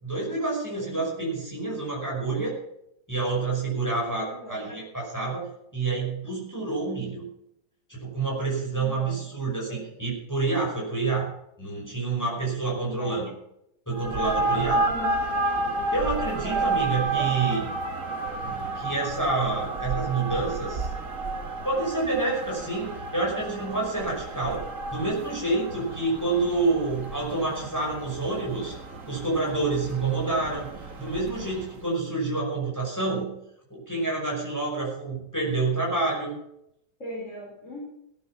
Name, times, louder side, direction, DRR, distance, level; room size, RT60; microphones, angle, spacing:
voice 1, 0.0-2.6 3.1-5.5 5.7-7.2 7.9-11.3 11.6-13.3 13.9-14.8 15.9-17.7 18.4-20.9 21.6-24.6 24.9-28.7 29.1-33.3 33.7-36.4, right 3 dB, 10° left, -3 dB, 5.5 m, -28 dB
voice 2, 4.3-4.7 8.7-9.2 9.7-9.9 12.8-13.2 14.7-15.2 16.4-16.7 17.1-17.5 37.0-37.8, left 1 dB, 40° left, -5 dB, 5.2 m, -39 dB
sound 1, 13.9-31.8, right 2 dB, 45° right, 1.8 m, -31 dB
17.5 x 9.5 x 6.1 m, 0.77 s
omnidirectional pair, 2.0 m